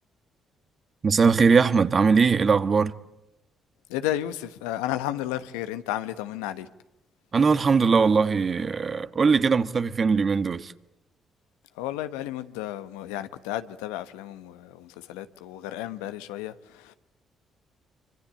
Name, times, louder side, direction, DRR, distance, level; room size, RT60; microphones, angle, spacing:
voice 1, 1.0-2.9 7.3-10.7, right 5 dB, 45° right, 1.4 m, -20 dB
voice 2, 3.9-6.7 11.7-16.9, left 13 dB, 85° left, 1.1 m, -33 dB
25.5 x 25.5 x 8.5 m
hypercardioid pair, 50°, 0 cm